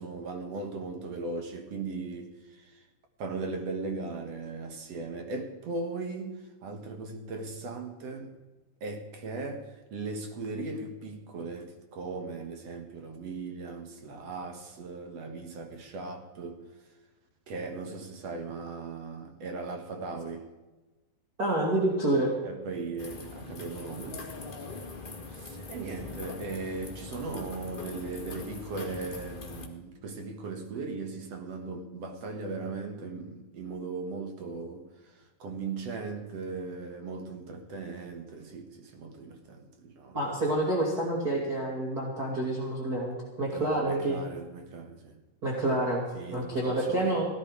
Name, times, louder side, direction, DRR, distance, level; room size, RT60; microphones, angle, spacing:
voice 1, 0.0-2.8 3.2-8.3 8.8-16.6 17.5-20.5 22.4-24.2 25.3-34.9 35.4-40.2 43.5-45.2 46.1-47.1, right 3 dB, 55° right, 2.2 m, -38 dB
voice 2, 21.4-22.3 40.1-44.2 45.4-47.3, right 1 dB, 30° right, 2.6 m, -28 dB
sound 1, 23.0-29.7, left 3 dB, 50° left, 0.6 m, -42 dB
17.0 x 12.0 x 4.9 m
omnidirectional pair, 3.9 m